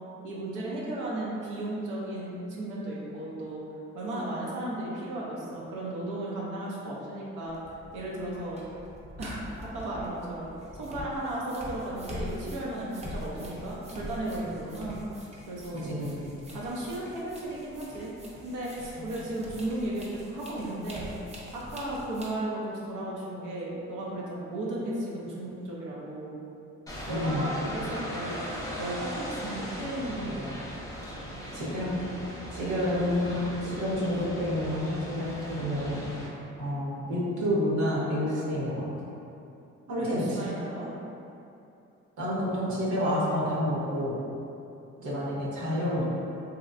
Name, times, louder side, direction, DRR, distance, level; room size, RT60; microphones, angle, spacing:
voice 1, 0.2-3.6 3.9-7.6 7.9-8.6 9.2-10.5 10.8-15.0 15.5-15.9 16.5-18.1 18.4-21.1 21.5-26.3 27.1-28.4 28.8-30.6 32.6-32.8 39.9-40.9, right 1 dB, 85° right, -6 dB, 0.7 m, -35 dB
sound 1, 7.5-22.3, left 1 dB, 20° right, 0.7 m, -44 dB
voice 2, 15.7-16.4 19.0-19.1 27.1-27.5 31.5-32.0 32.5-36.0 36.6-38.9 39.9-40.4 42.2-44.2 45.0-46.0, left 1 dB, 70° right, -7 dB, 1.0 m, -29 dB
sound 2, 26.9-36.3, equal, 10° left, 0.7 m, -39 dB
3.1 x 2.8 x 2.5 m, 2.7 s
cardioid pair, 90°, 30 cm